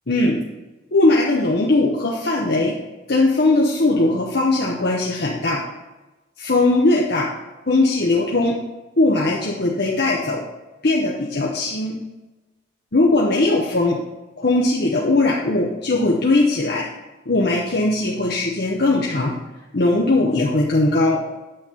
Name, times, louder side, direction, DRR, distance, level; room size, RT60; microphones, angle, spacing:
voice 1, 0.1-0.4 0.9-2.8 3.1-5.6 6.4-7.3 7.7-8.6 9.0-10.4 10.8-12.0 12.9-14.0 14.4-16.9 17.3-19.4 19.7-21.2, left 2 dB, 50° left, -3 dB, 0.9 m, -19 dB
8.8 x 7.2 x 3.9 m, 1.1 s
head